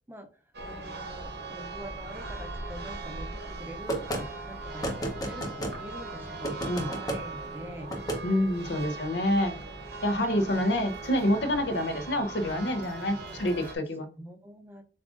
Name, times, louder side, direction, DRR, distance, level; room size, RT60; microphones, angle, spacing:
Church bell, 0.5-13.8, right 3 dB, 60° right, 0.7 m, -40 dB
voice 1, 0.6-7.9 8.8-8.9 13.2-13.4 14.2-14.8, equal, 10° right, 0.5 m, -45 dB
sound 1, 3.9-4.2 4.8-5.8 6.4-7.2 7.9-8.2, right 1 dB, 20° left, 0.7 m, -31 dB
voice 2, 8.2-9.6 10.0-14.1, left 1 dB, 65° left, 0.6 m, -27 dB
7.2 x 2.4 x 2.4 m
head